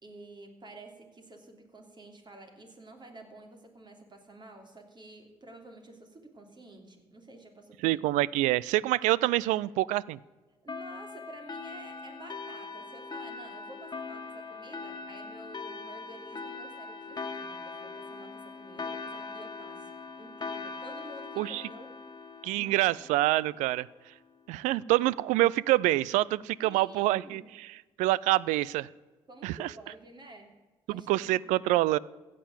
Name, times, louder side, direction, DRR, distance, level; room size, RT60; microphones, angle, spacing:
voice 1, 0.0-8.0 9.5-9.6 10.6-19.9 20.2-21.9 22.5-22.8 26.6-27.5 29.3-30.5 30.9-31.3, right 2 dB, 35° right, 4 dB, 3.0 m, -50 dB
voice 2, 7.8-10.2 21.4-21.6 22.4-23.9 24.5-27.7 28.0-28.9 29.4-29.7 30.9-32.0, right 17 dB, 75° right, 23 dB, 0.4 m, -26 dB
sound 1, 10.7-23.8, left 4 dB, 35° left, 1.7 m, -41 dB
15.5 x 7.6 x 7.4 m, 1.2 s
hypercardioid pair, 50°, 13 cm